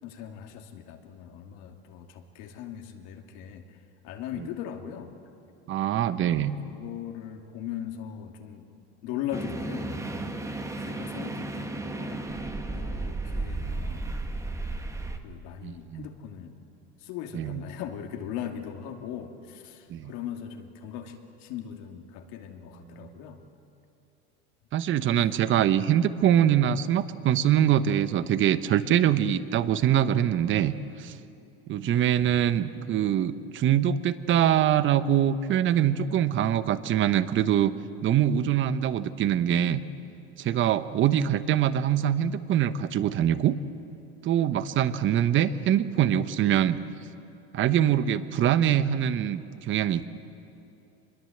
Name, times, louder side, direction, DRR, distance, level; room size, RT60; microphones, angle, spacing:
voice 1, 0.0-3.8 4.0-5.1 6.1-8.7 9.0-10.3 10.8-14.1 15.2-16.6 17.0-23.4, left 9 dB, 60° left, 4 dB, 2.7 m, -39 dB
voice 2, 5.7-6.5 15.6-16.1 17.3-17.6 19.9-20.1 23.0-23.1 24.7-31.1 31.7-37.7 38.0-39.8 40.4-43.6 44.2-46.8 47.5-50.1, right 10 dB, 35° right, 13 dB, 1.0 m, -24 dB
sound 1, 9.3-15.2, right 2 dB, 10° right, 1.5 m, -33 dB
25.0 x 22.0 x 8.0 m, 2.7 s
supercardioid pair, 120°, 33 cm